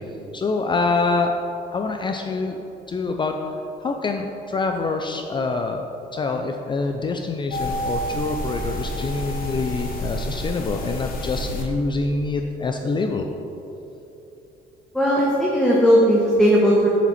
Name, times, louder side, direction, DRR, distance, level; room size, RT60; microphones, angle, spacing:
voice 1, 0.3-1.4 1.7-5.9 6.1-13.3, left 3 dB, 30° left, 4 dB, 0.4 m, -25 dB
sound 1, 7.5-11.6, equal, 60° left, 1.2 m, -29 dB
voice 2, 14.9-16.9, equal, 5° left, -5 dB, 1.2 m, -17 dB
7.2 x 6.9 x 4.2 m, 2.9 s
cardioid pair, 110°, 17 cm